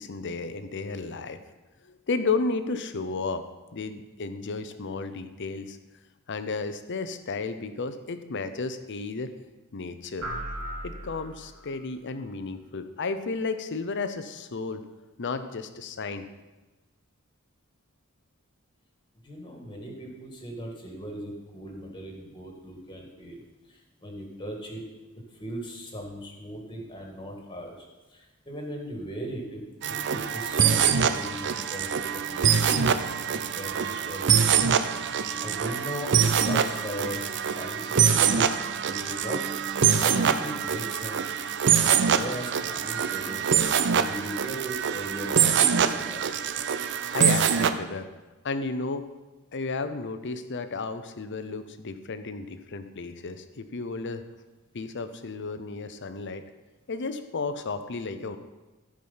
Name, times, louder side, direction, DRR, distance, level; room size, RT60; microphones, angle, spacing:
voice 1, 0.0-1.4 1.8-5.8 6.3-9.3 9.7-10.3 10.8-14.8 15.2-16.3 47.1-48.1 48.4-49.1 49.5-54.2 54.7-56.4 56.9-58.4, left 4 dB, 55° left, 10 dB, 0.7 m, -33 dB
sound 1, 10.2-11.8, equal, 85° right, 2.0 m, -36 dB
voice 2, 19.2-23.4 23.7-24.9 25.4-27.7 28.1-34.5 35.4-37.8 38.1-38.5 38.8-39.4 39.9-41.2 41.6-43.4 43.9-46.2, equal, 20° left, 1 dB, 2.0 m, -38 dB
sound 2, 29.8-47.7, right 7 dB, 55° right, 0.6 m, -24 dB
15.0 x 5.0 x 5.6 m, 1.1 s
head